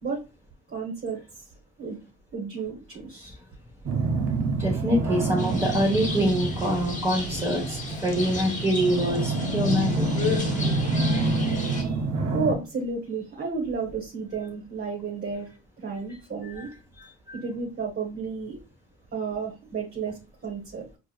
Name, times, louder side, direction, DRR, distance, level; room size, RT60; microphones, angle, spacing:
voice 1, 0.7-1.4 1.8-2.0 2.3-3.3 11.1-12.1 12.3-15.5 15.8-16.7 17.3-18.6 19.1-21.0, right 5 dB, 40° right, -1 dB, 1.0 m, -32 dB
sound 1, 3.9-12.5, right 2 dB, 65° right, 0.7 m, -27 dB
voice 2, 4.6-10.4 16.4-16.7 17.0-17.4, equal, 10° right, -4 dB, 1.2 m, -26 dB
sound 2, 5.4-11.8, left 4 dB, 25° left, 1.1 m, -34 dB
4.6 x 2.1 x 2.3 m, 0.30 s
cardioid pair, 90°, 30 cm